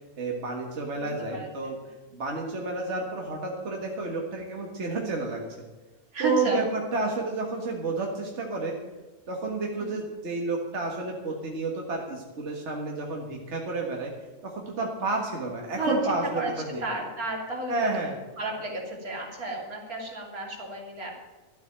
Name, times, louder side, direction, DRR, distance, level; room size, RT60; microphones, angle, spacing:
voice 1, 0.2-1.8 2.1-5.4 6.2-8.8 9.3-14.1 14.4-16.8 17.7-18.1, right 3 dB, 50° right, 0 dB, 1.9 m, -30 dB
voice 2, 1.3-1.7 6.1-6.7 9.8-10.0 15.8-18.0 18.4-21.1, right 1 dB, 75° right, -1 dB, 3.5 m, -32 dB
13.0 x 8.0 x 8.9 m, 1.2 s
omnidirectional pair, 1.5 m